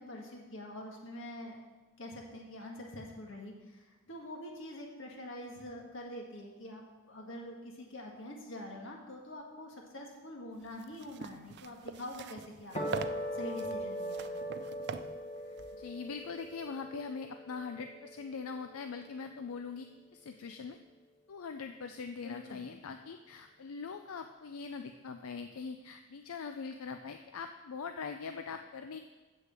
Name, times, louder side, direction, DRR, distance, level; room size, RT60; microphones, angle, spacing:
voice 1, 0.0-1.6 2.0-13.0 13.3-14.4 15.5-15.6 22.2-22.7, left 1 dB, 60° left, 0 dB, 1.8 m, -45 dB
sound 1, 10.6-16.7, right 5 dB, 50° right, 0.4 m, -44 dB
sound 2, 12.8-19.3, equal, 30° left, 1.3 m, -40 dB
voice 2, 15.7-20.8 21.3-29.0, left 5 dB, 80° left, 7 dB, 0.5 m, -42 dB
7.6 x 6.4 x 7.5 m, 1.3 s
head